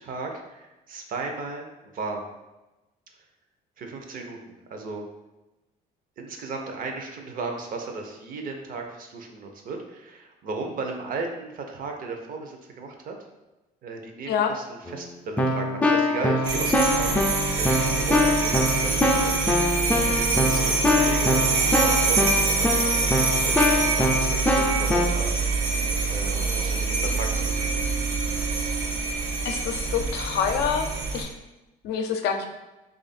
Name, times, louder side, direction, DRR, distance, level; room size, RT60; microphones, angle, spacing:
voice 1, 0.0-2.3 3.8-5.0 6.2-13.2 13.8-17.2 17.6-25.4 26.1-27.9, right 3 dB, 55° right, 3 dB, 0.7 m, -36 dB
Keyboard (musical), 14.9-15.0 15.4-25.1, left 1 dB, 10° left, 0.4 m, -24 dB
sound 1, 16.4-31.2, right 4 dB, 85° right, 0.8 m, -25 dB
voice 2, 29.4-30.9 31.1-31.3 31.8-32.5, left 7 dB, 80° left, 5 dB, 0.5 m, -26 dB
3.1 x 2.5 x 4.1 m, 1.0 s
cardioid pair, 110°, 17 cm